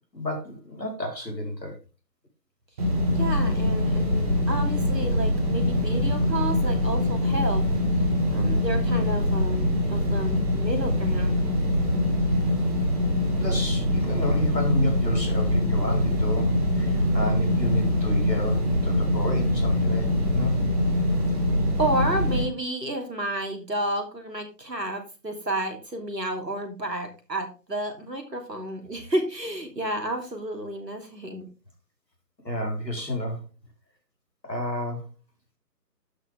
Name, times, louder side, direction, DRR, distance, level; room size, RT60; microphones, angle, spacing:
voice 1, 0.1-1.8 12.4-12.5 13.4-20.1 20.3-20.5 32.4-33.4 34.4-35.1, left 1 dB, 80° left, 2 dB, 4.4 m, -30 dB
sound 1, 2.8-22.4, left 1 dB, 25° right, 2.2 m, -23 dB
voice 2, 3.1-7.6 8.3-11.5 21.8-31.5, right 1 dB, 80° right, 4 dB, 3.1 m, -31 dB
11.5 x 6.8 x 3.5 m, 0.31 s
figure-of-eight pair, 145°, 49 cm